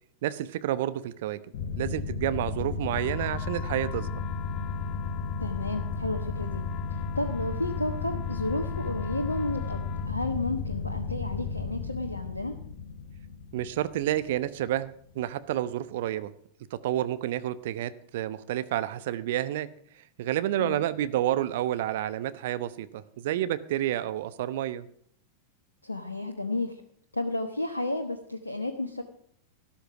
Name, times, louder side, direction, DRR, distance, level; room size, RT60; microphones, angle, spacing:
voice 1, 0.2-1.4 1.7-4.2 13.5-16.3 16.7-19.7 20.2-24.9, right 13 dB, 55° right, 13 dB, 0.9 m, -30 dB
sound 1, 1.5-14.8, left 5 dB, 50° left, 1.8 m, -34 dB
sound 2, 2.9-10.1, left 11 dB, 35° left, 0.8 m, -45 dB
voice 2, 5.4-12.6 20.6-20.8 25.8-26.8 27.1-29.0, left 2 dB, 80° left, 5 dB, 1.2 m, -32 dB
13.5 x 13.0 x 4.8 m, 0.62 s
figure-of-eight pair, 90°, 0 cm